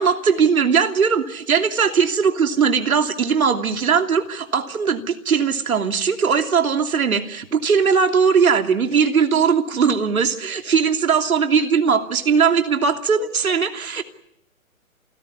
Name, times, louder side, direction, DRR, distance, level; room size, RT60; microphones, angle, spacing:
voice 1, 0.0-14.0, right 6 dB, 80° right, 6 dB, 2.9 m, -19 dB
28.5 x 16.0 x 9.8 m, 0.79 s
hypercardioid pair, 160°, 42 cm